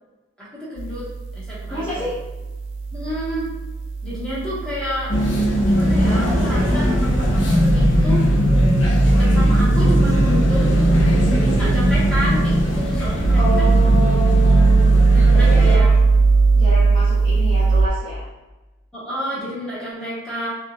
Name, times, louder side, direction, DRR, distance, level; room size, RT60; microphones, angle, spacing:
voice 1, 0.4-2.1 2.9-3.5 4.0-5.1 5.7-8.2 9.0-10.7 11.4-13.7 15.1-16.0 17.3-17.4 18.9-20.5, equal, 5° left, -9 dB, 1.2 m, -30 dB
sound 1, 0.8-17.9, right 4 dB, 80° right, 0.3 m, -19 dB
voice 2, 1.7-2.2 13.3-14.9 15.3-16.0 16.5-18.3, left 1 dB, 25° left, -10 dB, 0.8 m, -28 dB
sound 2, 5.1-15.7, left 1 dB, 75° left, 0.7 m, -19 dB
5.5 x 2.4 x 2.3 m, 1.1 s
head